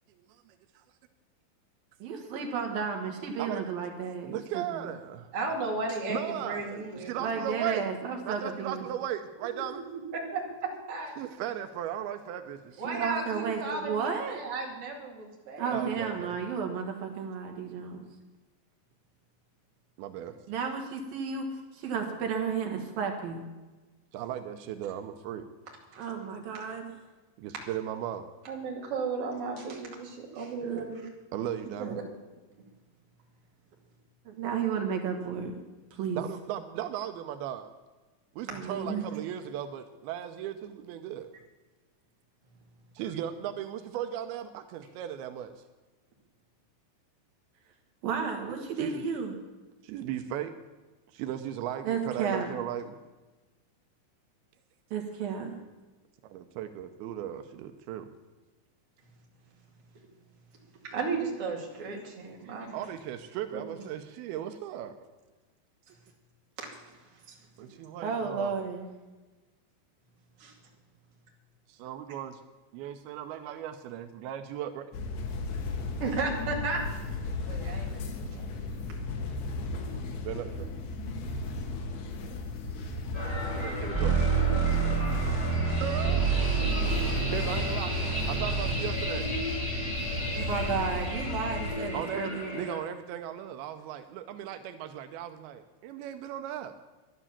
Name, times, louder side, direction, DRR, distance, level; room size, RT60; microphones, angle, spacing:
voice 1, 2.0-4.9 7.2-8.9 12.8-14.4 15.6-18.1 20.5-21.5 21.7-23.4 26.0-26.9 30.6-30.9 34.3-35.6 35.9-36.2 38.5-39.1 48.0-49.3 51.8-52.6 54.9-55.5 68.0-68.9 90.4-92.6, right 6 dB, 60° right, 2 dB, 3.0 m, -33 dB
voice 2, 3.4-3.7 4.2-5.3 6.1-7.9 8.2-9.8 11.2-12.7 15.7-16.4 20.0-20.3 24.1-25.5 27.4-28.3 31.3-32.0 36.2-37.7 38.4-41.3 43.0-45.5 48.8-49.1 49.8-50.5 51.1-53.0 56.2-58.1 62.7-65.0 67.6-68.7 71.7-72.4 72.7-74.8 79.9-80.7 83.5-84.5 85.8-86.3 87.3-87.9 88.3-89.3 91.9-96.7, right 10 dB, 85° right, 8 dB, 2.2 m, -37 dB
voice 3, 5.3-7.3 10.1-11.2 12.8-15.8 25.9-26.0 26.5-26.6 28.4-31.0 31.8-32.0 38.8-39.1 60.8-62.7 63.5-63.8 66.6-66.8 67.3-67.4 70.4-70.5 76.0-76.8 77.5-78.0 78.3-79.0, right 4 dB, 40° right, -1 dB, 2.8 m, -35 dB
sound 1, 74.9-91.8, left 2 dB, 90° left, 3.6 m, -35 dB
sound 2, 83.1-92.8, left 1 dB, 10° left, 2.3 m, -36 dB
sound 3, 83.9-88.7, right 6 dB, 20° right, 5.2 m, -28 dB
12.5 x 11.0 x 7.4 m, 1.2 s
omnidirectional pair, 5.2 m